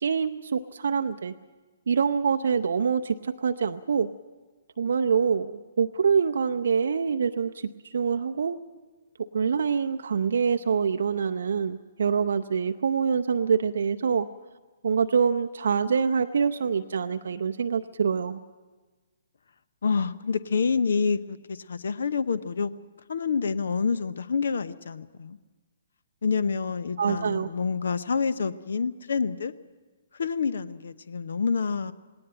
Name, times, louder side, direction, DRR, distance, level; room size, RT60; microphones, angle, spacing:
voice 1, 0.0-1.3 1.9-4.1 4.8-8.6 9.3-14.3 14.8-18.4 27.0-27.5, right 6 dB, 55° right, 7 dB, 0.6 m, -25 dB
voice 2, 19.8-22.7 23.1-25.4 26.2-29.5 30.1-31.9, left 5 dB, 60° left, 16 dB, 0.8 m, -27 dB
19.0 x 18.5 x 9.1 m, 1.3 s
figure-of-eight pair, 125°, 0 cm